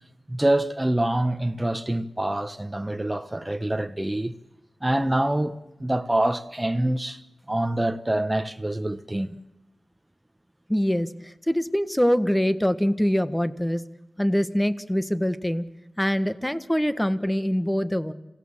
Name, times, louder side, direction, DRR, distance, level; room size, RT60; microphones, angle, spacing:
voice 1, 0.3-4.3 4.8-7.2 7.5-9.3, right 1 dB, 15° right, 1.1 m, -25 dB
voice 2, 10.7-13.8 14.2-15.6 16.0-18.1, equal, 10° left, 1.4 m, -24 dB
27.0 x 17.0 x 7.4 m
cardioid pair, 55°, 0 cm